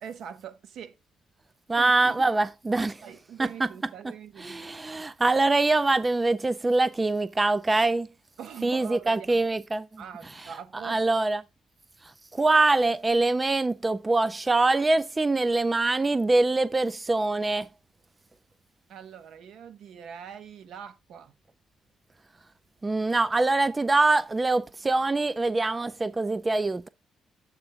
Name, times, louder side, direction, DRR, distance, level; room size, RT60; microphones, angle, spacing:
voice 1, 0.0-1.0 1.8-2.3 3.0-4.8 8.4-9.5 10.0-11.0 18.9-21.3, right 8 dB, 75° right, 1.3 m, -42 dB
voice 2, 1.7-3.0 3.4-3.5 4.4-8.1 8.6-9.9 10.8-11.4 12.3-17.7 22.8-26.9, right 2 dB, 20° right, 0.4 m, -24 dB
8.1 x 3.4 x 5.7 m
cardioid pair, 90°, 0 cm